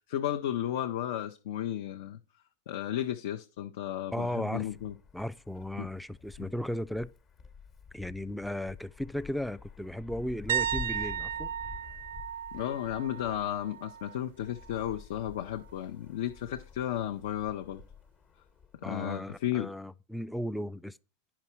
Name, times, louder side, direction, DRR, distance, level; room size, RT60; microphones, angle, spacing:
voice 1, 0.1-2.2 2.7-4.9 5.8-5.9 6.4-6.5 12.5-17.8 18.8-19.7, left 11 dB, 70° left, 0.7 m, -34 dB
voice 2, 4.1-4.7 5.1-7.1 7.9-11.5 18.8-21.0, left 1 dB, ahead, 0.3 m, -36 dB
Wind, 4.5-19.4, left 5 dB, 35° left, 1.1 m, -49 dB
sound 1, 10.5-14.2 14.6-14.9 17.8-17.9, right 9 dB, 85° right, 0.4 m, -35 dB
9.6 x 5.9 x 4.4 m
supercardioid pair, 135°, 0 cm